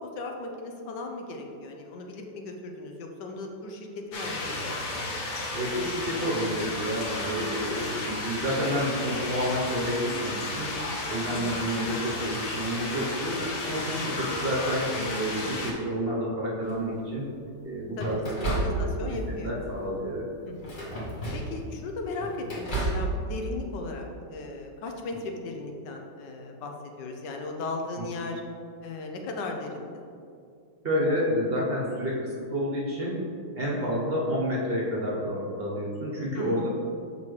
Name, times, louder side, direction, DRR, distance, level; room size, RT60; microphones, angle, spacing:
voice 1, 0.0-5.0 11.3-11.7 14.1-14.2 18.0-18.2 18.4-19.6 20.5-20.9 21.3-28.4 28.8-30.0 33.7-33.9 36.3-36.7, left 2 dB, 85° left, 3 dB, 1.4 m, -37 dB
sound 1, 4.1-15.7, left 2 dB, 60° left, 1.2 m, -33 dB
voice 2, 5.5-10.8 11.1-17.3 17.6-20.3 28.0-28.1 30.8-33.2 33.5-36.7, equal, 40° right, -5 dB, 1.0 m, -30 dB
sound 2, 16.6-17.1 18.0-19.2 19.6-19.9 20.6-21.6 22.0-23.1, right 2 dB, 30° left, 1.1 m, -31 dB
6.6 x 5.3 x 3.2 m, 2.4 s
omnidirectional pair, 1.9 m